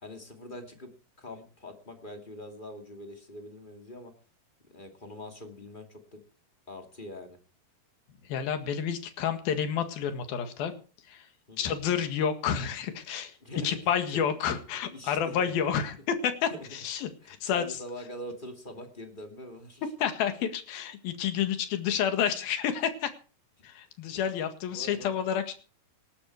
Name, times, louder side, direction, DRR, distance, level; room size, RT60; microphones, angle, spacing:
voice 1, 0.0-0.9 1.2-4.1 4.7-6.2 6.7-7.4 11.5-11.7 13.4-13.8 14.1-14.3 14.8-15.5 16.5-16.7 17.0-19.8 23.6-23.7 24.7-25.2, left 1 dB, 15° left, 4 dB, 1.9 m, -43 dB
voice 2, 8.3-10.7 11.1-11.3 11.6-13.3 13.6-17.7 20.0-23.1 23.6-25.5, left 8 dB, 75° left, 8 dB, 3.5 m, -29 dB
19.0 x 13.0 x 4.7 m, 0.37 s
omnidirectional pair, 4.4 m